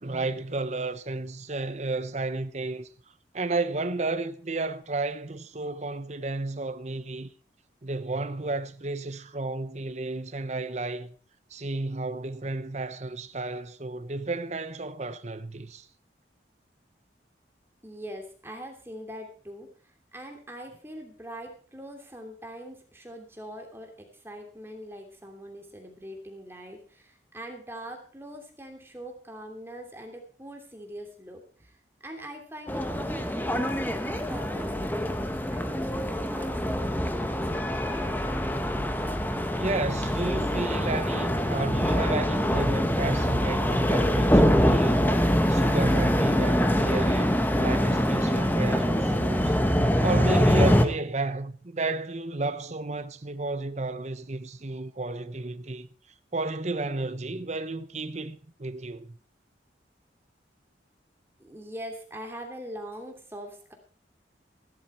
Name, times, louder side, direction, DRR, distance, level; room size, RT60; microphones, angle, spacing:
voice 1, 0.0-2.9 3.3-7.3 7.8-11.1 11.5-15.9 39.5-45.0 45.5-49.5 50.0-55.9 56.3-59.2, right 2 dB, 40° right, 0.9 m, -32 dB
voice 2, 17.8-19.7 20.1-31.4 32.0-34.7 34.9-37.3 61.4-63.7, equal, 15° right, 2.9 m, -42 dB
sound 1, 32.7-50.9, equal, 10° left, 1.2 m, -24 dB
16.0 x 12.0 x 4.4 m
head